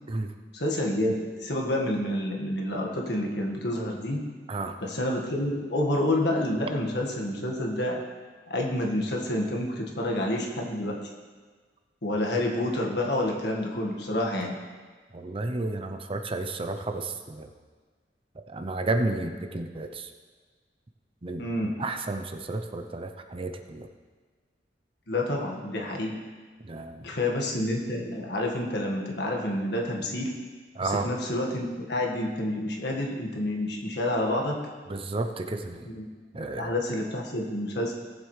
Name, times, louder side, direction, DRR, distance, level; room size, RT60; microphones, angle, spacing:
voice 1, 0.5-4.2 4.8-8.0 8.5-11.0 12.0-14.5 21.4-21.7 25.1-26.2 27.0-30.3 30.8-34.6 35.8-36.1 36.3-37.9, left 1 dB, 65° left, 0 dB, 1.7 m, -28 dB
voice 2, 15.1-17.5 18.5-20.1 21.2-23.9 26.6-27.1 30.7-31.1 34.9-35.9 36.3-36.7, right 2 dB, 30° right, 6 dB, 0.6 m, -32 dB
18.0 x 7.4 x 3.3 m, 1.5 s
head